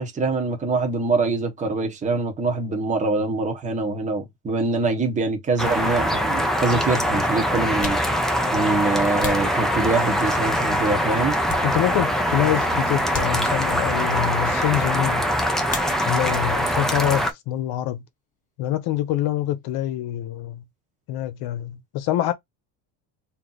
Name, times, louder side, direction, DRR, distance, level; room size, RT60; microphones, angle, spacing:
voice 1, 0.0-8.0 8.5-11.4, right 3 dB, 15° right, 1.1 m, -24 dB
sound 1, 5.6-17.3, equal, ahead, 0.3 m, -23 dB
voice 2, 11.6-15.3 16.1-18.0 18.6-20.6 21.1-22.3, left 13 dB, 55° left, 1.0 m, -25 dB
sound 2, 15.6-16.4 16.7-17.4 17.7-19.8, left 5 dB, 15° left, 0.9 m, -39 dB
3.3 x 2.9 x 4.0 m
cardioid pair, 160°, 44 cm